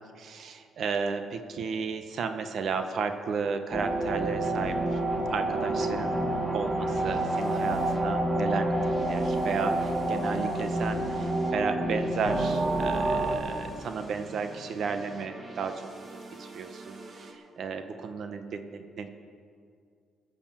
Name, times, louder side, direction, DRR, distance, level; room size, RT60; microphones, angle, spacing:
voice 1, 0.2-5.0 5.3-6.2 6.5-15.9 16.4-19.1, right 5 dB, 60° right, 8 dB, 1.0 m, -33 dB
sound 1, 3.7-13.4, right 1 dB, 15° right, 2.2 m, -28 dB
sound 2, 5.6-17.3, right 3 dB, 40° right, 1.7 m, -45 dB
19.5 x 7.0 x 7.4 m, 2.3 s
cardioid pair, 90°, 0 cm